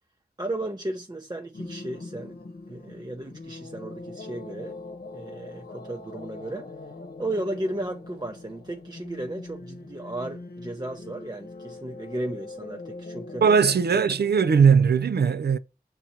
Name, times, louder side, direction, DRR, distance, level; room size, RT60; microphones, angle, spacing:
voice 1, 0.4-2.3 2.7-4.8 5.1-6.7 7.2-13.4 13.9-14.0, right 1 dB, 25° right, 0.6 m, -34 dB
sound 1, 1.5-15.1, left 2 dB, 70° left, 0.9 m, -42 dB
voice 2, 13.4-15.6, right 6 dB, 80° right, 0.4 m, -19 dB
5.8 x 3.9 x 4.2 m
wide cardioid pair, 40°, 17 cm